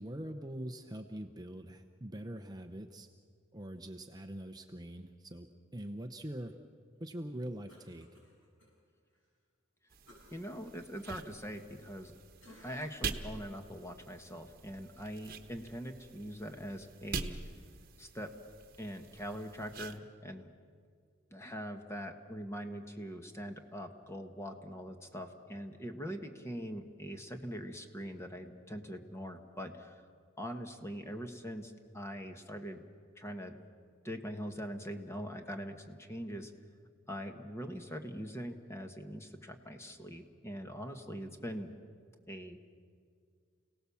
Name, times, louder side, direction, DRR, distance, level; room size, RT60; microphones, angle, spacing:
voice 1, 0.0-3.1 3.5-6.6 7.0-8.1, right 1 dB, 20° right, 6 dB, 0.8 m, -43 dB
Cough, 7.7-8.7 9.1-9.3 10.1-12.1 12.4-13.1 13.6-13.8, left 1 dB, 75° left, 6.7 m, -60 dB
sound 1, 9.9-20.0, right 4 dB, 50° right, 1.2 m, -45 dB
voice 2, 10.3-12.1 12.6-17.4 18.0-18.3 18.8-20.5 21.3-29.9 30.4-32.8 33.2-33.5 34.0-36.5 37.1-41.7 42.3-42.6, equal, 15° left, 5 dB, 1.5 m, -42 dB
29.5 x 18.0 x 7.1 m, 2.1 s
head